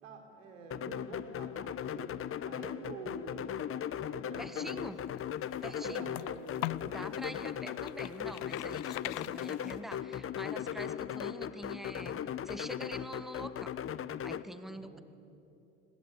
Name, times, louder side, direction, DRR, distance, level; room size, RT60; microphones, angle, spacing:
voice 1, 0.0-2.1 2.4-3.6 4.1-4.9 5.7-6.9 14.6-15.0, right 4 dB, 90° right, 3 dB, 4.0 m, -48 dB
sound 1, 0.7-14.4, left 9 dB, 35° left, 1.0 m, -38 dB
voice 2, 4.4-5.0 5.6-6.1 6.8-13.7 14.2-15.0, right 1 dB, ahead, 10 dB, 1.5 m, -45 dB
sound 2, 4.9-7.0 7.5-10.0, left 21 dB, 65° left, 0.6 m, -41 dB
29.5 x 20.5 x 8.4 m, 2.9 s
hypercardioid pair, 75°, 37 cm